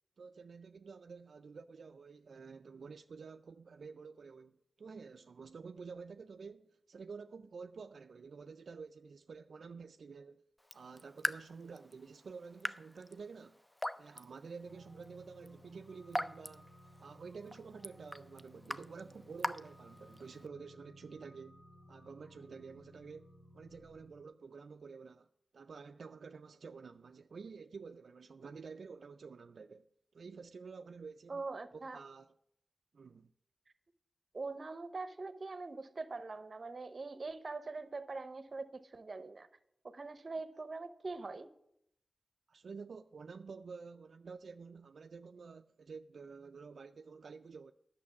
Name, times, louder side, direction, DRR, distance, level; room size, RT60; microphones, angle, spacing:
voice 1, 0.2-4.5 4.8-10.4 10.7-13.6 14.0-16.7 17.0-21.6 21.9-25.3 25.5-29.9 30.1-31.4 31.7-32.3 32.9-33.3 42.5-47.7, right 5 dB, 70° right, 0.3 m, -50 dB
Raindrop / Drip, 10.6-20.5, equal, 10° left, 0.4 m, -44 dB
sound 1, 14.6-24.3, equal, 40° left, 1.3 m, -59 dB
voice 2, 31.3-32.0 34.3-39.5 39.8-41.5, right 3 dB, 40° right, 0.7 m, -43 dB
11.0 x 6.5 x 7.1 m
wide cardioid pair, 145°, 0 cm